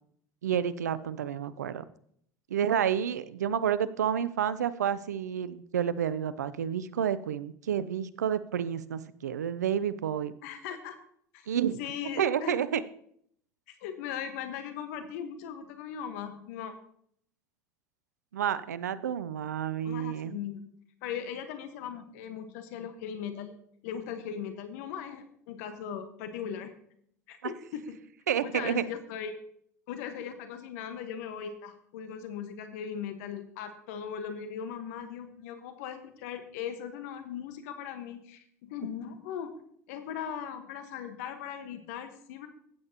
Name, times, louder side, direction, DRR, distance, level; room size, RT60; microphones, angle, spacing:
voice 1, 0.4-1.8 2.5-10.3 11.5-11.8 12.2-12.8 18.3-20.4 27.4-27.5 28.3-28.8, right 9 dB, 85° right, 16 dB, 0.6 m, -30 dB
voice 2, 10.4-11.0 11.3-11.5 11.8-12.6 13.7-16.7 19.8-20.6 21.0-23.5 23.8-26.7 27.3-28.0 28.4-29.4 29.9-39.6 39.9-42.5, left 8 dB, 70° left, 7 dB, 1.4 m, -39 dB
15.0 x 8.6 x 3.0 m, 0.67 s
hypercardioid pair, 80°, 9 cm